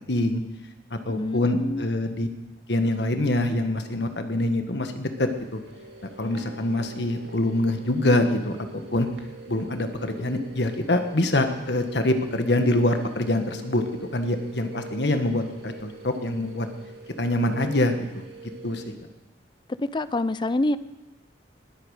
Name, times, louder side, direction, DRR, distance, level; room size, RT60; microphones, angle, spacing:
voice 1, 0.1-0.4 1.0-2.3 2.7-5.6 6.2-8.6 8.9-9.1 9.5-13.8 14.1-16.7 17.2-18.2 18.6-18.8, left 1 dB, 65° left, 1.5 m, -25 dB
voice 2, 1.1-1.9 19.8-20.8, left 2 dB, 25° left, 0.5 m, -26 dB
sound 1, 5.2-18.9, right 3 dB, 70° right, 2.0 m, -45 dB
20.5 x 8.7 x 6.5 m
head